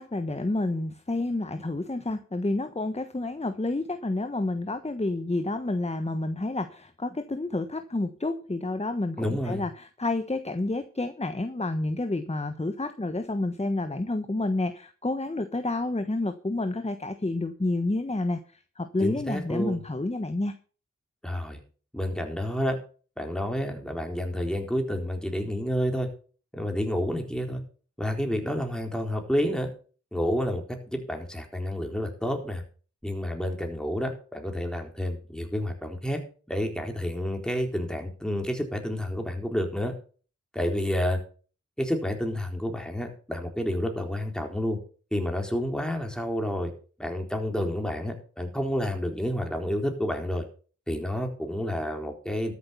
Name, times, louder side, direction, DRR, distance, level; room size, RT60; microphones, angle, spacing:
voice 1, 0.0-20.5, left 2 dB, 20° left, 9 dB, 1.2 m, -29 dB
voice 2, 9.2-9.6 19.0-19.8 21.2-21.6 21.9-22.8 23.2-26.1 26.5-27.6 28.0-29.7 30.1-32.6 33.0-36.2 36.5-39.9 40.5-41.2 41.8-44.8 45.1-46.7 47.0-50.4 50.9-52.5, equal, ahead, 3 dB, 4.1 m, -29 dB
13.5 x 8.4 x 5.7 m, 0.39 s
cardioid pair, 40°, 31 cm